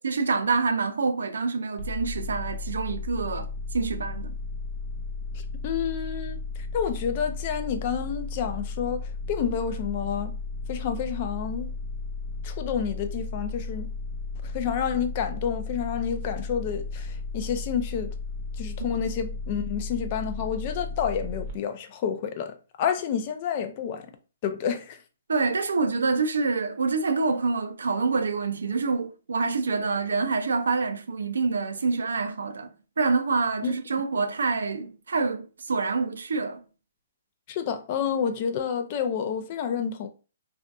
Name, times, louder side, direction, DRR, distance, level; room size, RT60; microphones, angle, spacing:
voice 1, 0.0-4.3 18.8-18.9 25.3-32.7 33.0-36.6, right 4 dB, 85° right, 0.4 m, -26 dB
sound 1, 1.8-21.5, left 3 dB, 40° right, 0.7 m, -34 dB
voice 2, 5.6-6.4 6.7-10.3 10.7-11.7 12.4-13.9 14.4-18.1 18.6-24.1 24.4-25.0 33.6-33.7 37.5-40.1, left 7 dB, 40° left, 0.4 m, -29 dB
2.6 x 2.3 x 2.3 m
hypercardioid pair, 145°, 0 cm